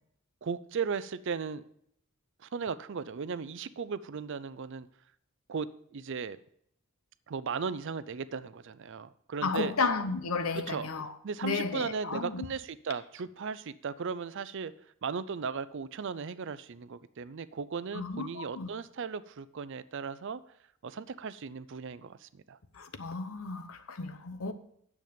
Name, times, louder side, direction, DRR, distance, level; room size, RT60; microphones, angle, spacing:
voice 1, 0.4-1.6 2.4-4.9 5.5-6.4 7.3-9.7 10.7-10.9 11.2-14.7 15.0-20.4 20.8-22.6, right 5 dB, 60° right, 0.5 m, -36 dB
voice 2, 9.4-11.1 11.4-12.4 17.9-18.7 22.7-24.5, left 4 dB, 80° left, 0.9 m, -33 dB
9.2 x 7.2 x 5.1 m
head